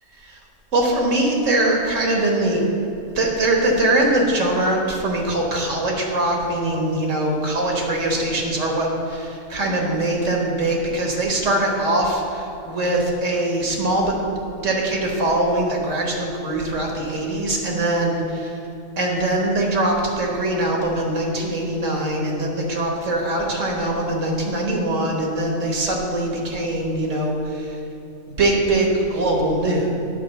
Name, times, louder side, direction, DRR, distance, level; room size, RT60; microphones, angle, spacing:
voice 1, 0.7-2.6 3.1-14.2 14.6-18.6 19.0-27.8 28.4-29.9, right 1 dB, 75° right, 0 dB, 1.8 m, -22 dB
9.8 x 5.1 x 6.8 m, 2.9 s
omnidirectional pair, 1.3 m